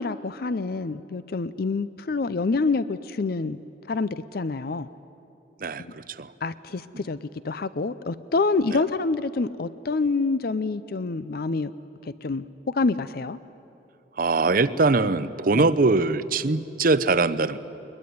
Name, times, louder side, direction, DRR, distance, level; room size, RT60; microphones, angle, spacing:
voice 1, 0.0-3.6 3.9-4.9 5.8-5.9 6.4-7.2 7.4-11.7 12.0-13.4 15.5-15.6, left 3 dB, 55° left, 15 dB, 0.5 m, -27 dB
voice 2, 5.6-6.3 6.9-7.0 8.7-8.8 14.1-17.6, right 3 dB, 50° right, 13 dB, 0.7 m, -22 dB
22.0 x 21.5 x 9.4 m, 2.8 s
head